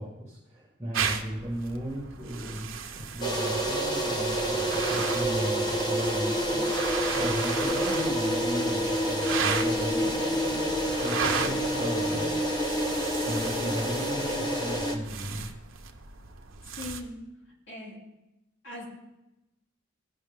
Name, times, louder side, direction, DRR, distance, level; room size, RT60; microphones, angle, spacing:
voice 1, 0.0-15.5, equal, 15° right, -7 dB, 1.8 m, -36 dB
sound 1, 0.9-17.0, right 6 dB, 70° right, 0.8 m, -36 dB
sound 2, 3.2-15.0, equal, 20° left, 1.0 m, -28 dB
voice 2, 16.8-17.2 17.7-18.0 18.6-18.8, left 2 dB, 60° left, -5 dB, 2.7 m, -39 dB
16.0 x 5.5 x 3.6 m, 0.95 s
head